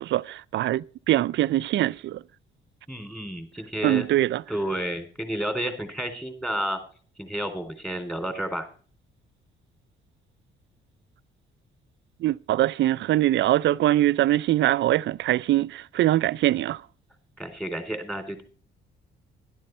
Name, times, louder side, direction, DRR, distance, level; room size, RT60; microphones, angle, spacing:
voice 1, 0.0-2.2 3.8-4.4 12.2-16.8, right 14 dB, 65° right, 0.4 m, -23 dB
voice 2, 2.9-4.1 4.5-6.8 7.2-8.7 17.4-18.4, right 1 dB, 5° left, 3.3 m, -31 dB
11.5 x 11.5 x 4.5 m
cardioid pair, 90°, 20 cm